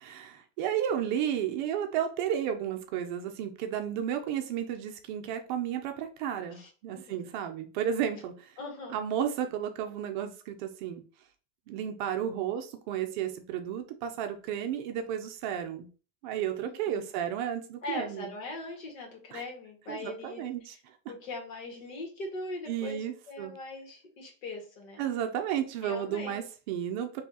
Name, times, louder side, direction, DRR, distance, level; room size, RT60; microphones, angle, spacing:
voice 1, 0.0-8.5 8.9-11.0 11.7-15.9 16.2-18.3 19.3-19.4 19.9-20.7 22.7-23.5 25.0-27.2, right 9 dB, 40° right, 6 dB, 0.5 m, -33 dB
voice 2, 6.5-7.2 8.6-9.0 16.6-17.1 17.8-20.4 21.1-23.0 23.3-25.0 25.8-26.4, left 2 dB, 80° left, 1 dB, 1.9 m, -40 dB
4.5 x 3.0 x 2.8 m, 0.37 s
supercardioid pair, 170°, 39 cm